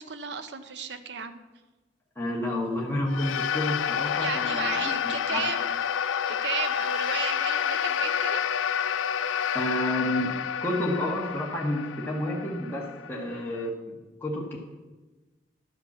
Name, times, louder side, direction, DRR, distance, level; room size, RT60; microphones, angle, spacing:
voice 1, 0.0-1.4 4.2-5.7 6.3-8.4, right 6 dB, 60° right, 10 dB, 0.8 m, -34 dB
voice 2, 2.1-5.5 9.5-10.3 10.6-13.7 14.2-14.6, left 1 dB, 10° left, -4 dB, 1.5 m, -30 dB
sound 1, 3.1-13.6, left 8 dB, 90° left, 0.4 m, -29 dB
11.5 x 5.7 x 7.2 m, 1.2 s
head